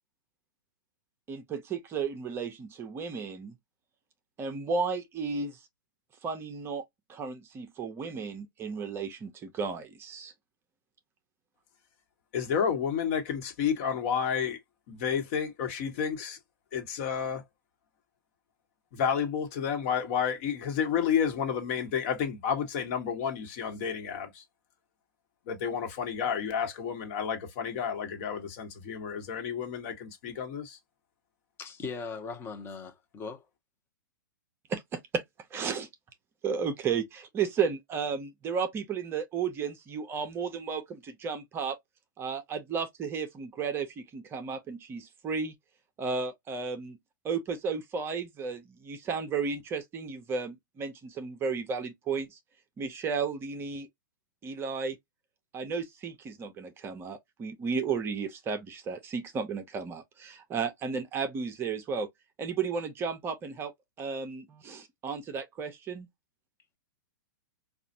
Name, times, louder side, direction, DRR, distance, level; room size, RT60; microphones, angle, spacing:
voice 1, 1.3-3.5 4.4-5.6 6.2-6.8 7.1-10.3 34.7-35.2 35.5-35.9 36.4-41.8 42.2-45.5 46.0-47.0 47.2-52.4 52.8-53.9 54.4-55.0 55.5-62.1 62.4-63.7 64.0-66.1, right 5 dB, 20° right, 0.7 m, -33 dB
voice 2, 12.3-14.6 14.9-16.4 16.7-17.4 18.9-24.4 25.5-30.8, left 7 dB, 45° left, 1.3 m, -30 dB
voice 3, 31.6-33.4, left 4 dB, 20° left, 0.9 m, -39 dB
4.9 x 2.4 x 2.7 m
figure-of-eight pair, 110°, 11 cm